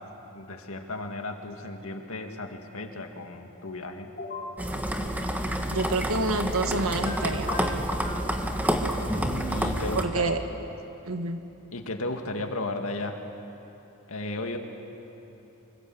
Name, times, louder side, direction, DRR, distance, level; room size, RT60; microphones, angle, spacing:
voice 1, 0.3-4.1 9.5-10.2 11.7-13.2 14.1-14.6, left 2 dB, 70° left, 4 dB, 2.2 m, -34 dB
sound 1, 4.1-4.5 6.5-7.1 7.5-8.2, left 2 dB, 40° left, 6.3 m, -37 dB
sound 2, 4.6-10.0, equal, 5° right, 1.6 m, -28 dB
voice 2, 5.7-7.8 9.9-10.4 11.0-11.4, right 3 dB, 70° right, 6 dB, 1.8 m, -28 dB
25.0 x 25.0 x 7.9 m, 3.0 s
head